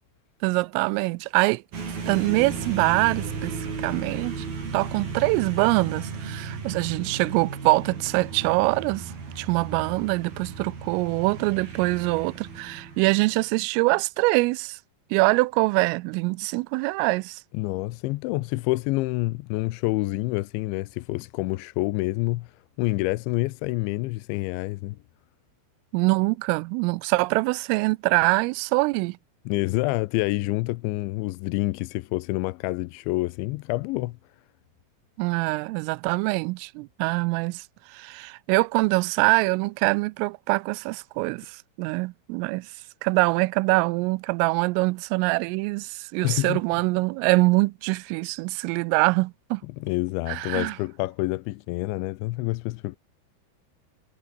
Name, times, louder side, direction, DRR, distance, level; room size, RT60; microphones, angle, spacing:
voice 1, 0.4-1.6 2.1-4.5 4.7-14.8 15.1-17.4 25.9-29.2 35.2-37.6 37.9-42.7 43.0-49.6 50.3-50.8, right 24 dB, 90° right, 3.2 m, -24 dB
sound 1, 1.7-13.5, right 5 dB, 50° right, 7.4 m, -35 dB
voice 2, 17.5-22.5 22.8-25.0 29.5-34.2 46.2-46.6 49.8-53.0, left 20 dB, 80° left, 2.8 m, -27 dB
omnidirectional pair, 5.8 m